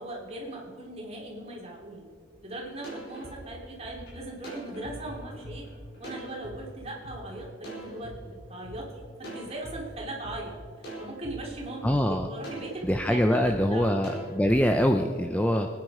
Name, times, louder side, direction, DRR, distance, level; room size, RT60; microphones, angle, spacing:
voice 1, 0.0-2.1 2.4-5.6 6.0-10.6 11.0-14.0, right 1 dB, 30° right, -2 dB, 3.0 m, -39 dB
sound 1, 2.3-2.4 2.8-6.6 7.0-7.2 7.6-8.8 9.2-9.8 10.2-10.4 10.8-11.4 11.8-12.0 12.4-13.0 13.4-13.6 14.0-14.6, right 1 dB, 55° left, 5.0 m, -42 dB
voice 2, 11.8-12.3 12.8-15.7, equal, 5° left, 5 dB, 0.5 m, -24 dB
24.0 x 9.6 x 4.9 m, 2.1 s
head